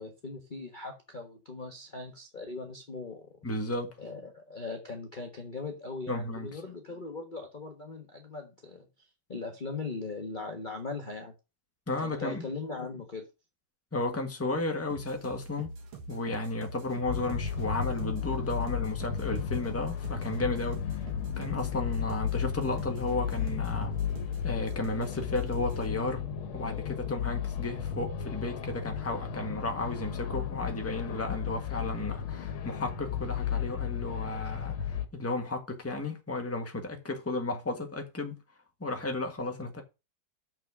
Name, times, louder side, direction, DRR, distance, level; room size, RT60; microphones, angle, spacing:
voice 1, 0.0-3.3 4.0-8.9 9.3-11.3 12.0-13.3, left 3 dB, 25° left, 1.2 m, -39 dB
voice 2, 3.4-4.0 6.1-6.5 11.9-12.4 13.9-15.7 16.1-20.8 21.4-23.9 24.4-26.2 26.5-38.4 38.8-39.8, left 2 dB, 10° left, 1.4 m, -33 dB
sound 1, 14.9-25.9, right 3 dB, 85° right, 2.3 m, -45 dB
sound 2, 17.1-35.0, left 8 dB, 90° left, 1.9 m, -34 dB
6.9 x 6.2 x 6.1 m
omnidirectional pair, 2.3 m